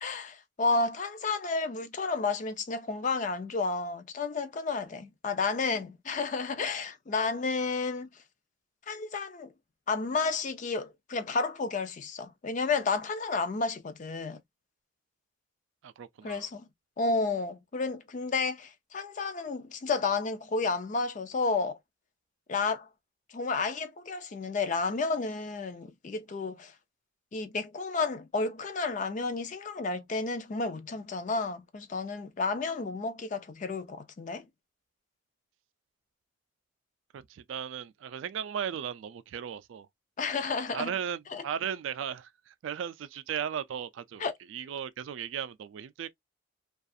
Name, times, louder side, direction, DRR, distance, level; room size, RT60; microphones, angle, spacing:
voice 1, 0.0-8.1 8.9-9.5 9.9-14.4 16.2-16.7 17.0-21.8 22.5-22.9 23.3-26.7 27.3-34.4 40.2-40.9 41.3-41.4 44.2-44.3, left 4 dB, 40° left, 0.4 m, -31 dB
voice 2, 15.8-16.5 37.1-39.9 40.7-44.2 44.5-46.1, right 8 dB, 75° right, 0.3 m, -36 dB
2.4 x 2.3 x 2.6 m
head